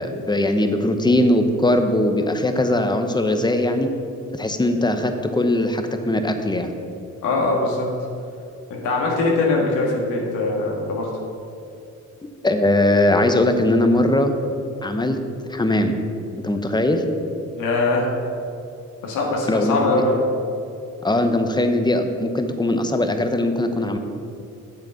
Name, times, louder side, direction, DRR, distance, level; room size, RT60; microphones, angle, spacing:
voice 1, 0.0-3.9 4.3-6.7 12.4-14.3 14.8-15.2 15.5-16.0 16.4-17.0 19.5-20.0 21.0-24.0, left 1 dB, 15° left, 6 dB, 0.9 m, -20 dB
voice 2, 7.2-7.9 8.7-11.1 17.6-18.1 19.0-20.2, left 2 dB, 90° left, -2 dB, 1.6 m, -22 dB
8.1 x 7.1 x 5.7 m, 2.6 s
cardioid pair, 90°, 30 cm